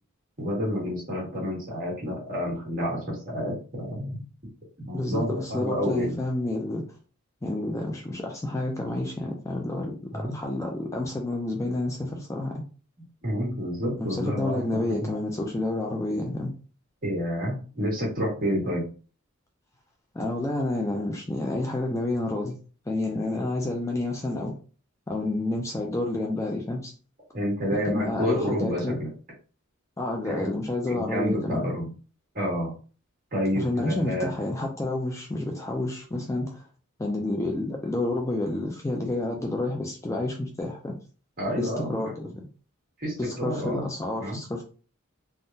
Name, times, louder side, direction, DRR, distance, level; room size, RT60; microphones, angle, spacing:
voice 1, 0.4-4.2 4.8-6.1 10.1-10.4 13.2-15.0 17.0-18.9 27.3-29.1 30.2-30.5 30.9-31.9 32.3-32.7 33.3-34.3 41.4-42.0 43.0-43.9 44.2-44.4, equal, 45° right, 1.6 m, -29 dB
voice 2, 4.9-6.8 7.4-12.6 14.0-16.6 20.1-22.6 22.9-24.5 25.1-26.9 27.7-29.0 30.0-31.7 33.6-36.7 37.0-40.9 41.6-42.4 43.2-44.6, left 2 dB, 15° left, 0.4 m, -29 dB
3.5 x 2.1 x 2.6 m
head